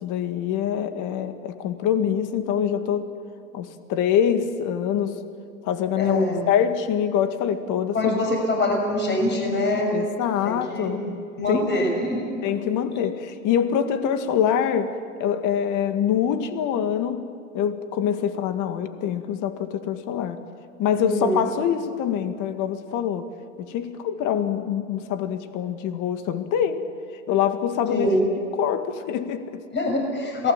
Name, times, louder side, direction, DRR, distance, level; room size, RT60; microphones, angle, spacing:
voice 1, 0.0-3.1 3.5-5.2 5.6-8.2 9.9-11.7 12.4-17.3 17.5-20.4 20.8-23.3 23.6-26.8 27.3-28.2 28.5-29.6, left 9 dB, 45° left, 9 dB, 2.1 m, -25 dB
voice 2, 6.0-6.5 7.9-9.9 10.4-10.9 11.4-12.3 20.9-21.4 27.9-28.2 29.7-30.5, left 1 dB, 25° left, 1 dB, 6.3 m, -24 dB
27.5 x 19.5 x 7.5 m, 2.5 s
hypercardioid pair, 110°, 42 cm